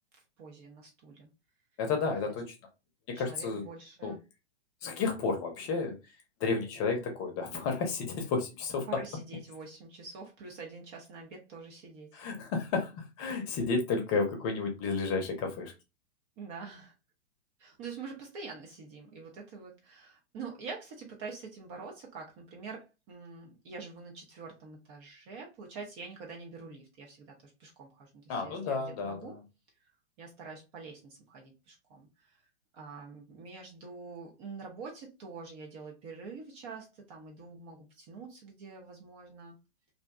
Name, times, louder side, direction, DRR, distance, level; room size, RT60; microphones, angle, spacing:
voice 1, 0.4-1.3 2.1-2.3 3.1-4.2 8.9-12.2 16.4-16.9 17.6-29.4 29.8-29.9 30.2-32.5 32.7-39.5, right 4 dB, 25° right, 0.5 m, -46 dB
voice 2, 1.8-2.5 3.1-3.6 4.0-4.1 4.8-6.0 6.4-8.9 12.1-15.7 28.3-29.4, left 4 dB, 30° left, 0.7 m, -32 dB
2.6 x 2.0 x 2.3 m
figure-of-eight pair, 105°, 34 cm